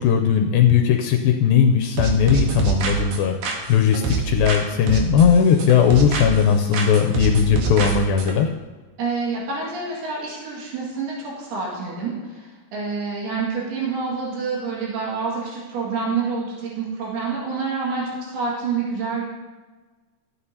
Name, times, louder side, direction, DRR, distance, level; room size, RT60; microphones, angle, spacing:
voice 1, 0.0-8.5, left 8 dB, 80° left, 3 dB, 2.2 m, -18 dB
sound 1, 2.0-4.6 4.9-6.5 6.7-8.3, right 5 dB, 70° right, 2.8 m, -25 dB
voice 2, 9.0-19.2, right 4 dB, 85° right, -5 dB, 4.1 m, -27 dB
14.5 x 9.6 x 2.8 m, 1.3 s
omnidirectional pair, 4.3 m